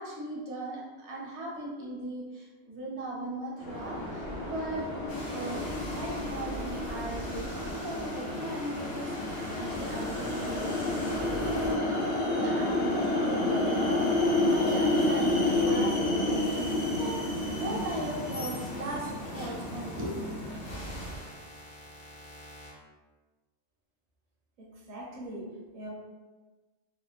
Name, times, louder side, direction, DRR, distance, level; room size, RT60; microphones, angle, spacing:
voice 1, 0.0-4.9 5.3-20.3, right 2 dB, 80° right, -4 dB, 1.0 m, -38 dB
sound 1, 3.6-21.1, left 2 dB, 85° left, 1.0 m, -30 dB
sound 2, 5.1-22.7, equal, 40° left, 0.8 m, -45 dB
voice 2, 24.6-25.9, right 1 dB, 50° right, -4 dB, 0.6 m, -42 dB
2.7 x 2.1 x 2.3 m, 1.3 s
omnidirectional pair, 1.1 m